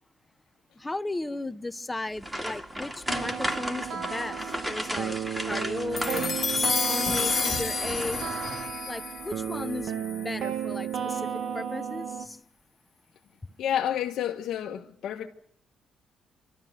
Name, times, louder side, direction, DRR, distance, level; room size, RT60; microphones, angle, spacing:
voice 1, 0.7-6.3 6.9-8.2 8.9-12.4, left 2 dB, 15° left, 0.9 m, -35 dB
sound 1, 2.2-8.8 9.2-9.4 9.8-9.9, equal, 10° right, 2.3 m, -35 dB
sound 2, 3.1-12.3, right 8 dB, 65° right, 1.4 m, -34 dB
sound 3, 6.0-10.5, left 5 dB, 40° left, 1.5 m, -30 dB
voice 2, 13.6-15.3, left 10 dB, 75° left, 1.2 m, -30 dB
27.5 x 13.0 x 9.3 m
cardioid pair, 90°, 0 cm